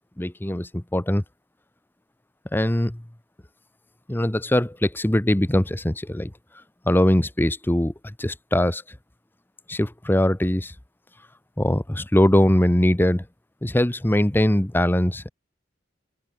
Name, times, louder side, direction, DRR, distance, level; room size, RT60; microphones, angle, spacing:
voice 1, 0.2-1.2 2.5-3.0 4.1-6.3 6.9-7.9 8.2-8.8 9.7-10.7 11.6-13.2 13.6-15.3, left 1 dB, 10° left, 0.8 m, -21 dB
open air
head